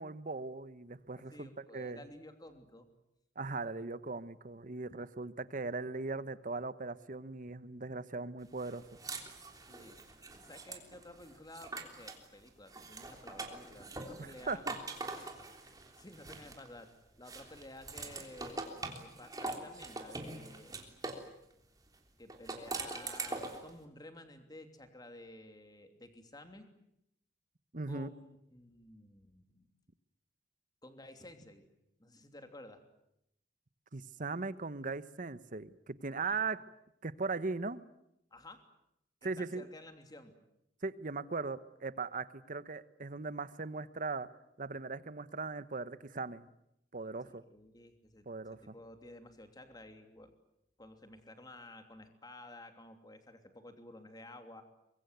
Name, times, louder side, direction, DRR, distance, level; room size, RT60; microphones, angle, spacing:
voice 1, 0.0-2.0 3.4-8.9 14.2-14.7 27.7-28.1 33.9-36.6 37.0-37.8 39.2-39.6 40.8-44.3 44.6-46.5 46.9-47.4 48.3-48.7, right 3 dB, 45° right, 15 dB, 1.1 m, -39 dB
voice 2, 1.3-2.9 9.7-10.0 10.4-14.7 15.1-16.9 17.2-18.7 19.0-20.8 22.2-26.7 27.9-29.7 30.8-31.7 32.0-32.8 36.3-36.4 38.3-38.6 39.2-40.4 47.2-48.2 48.6-50.3 50.8-54.6, left 1 dB, 20° left, 7 dB, 3.0 m, -53 dB
sound 1, 8.6-12.3 12.7-16.8 17.3-21.3 22.3-23.7, right 3 dB, 20° right, 3.4 m, -43 dB
24.0 x 22.5 x 9.3 m, 0.80 s
head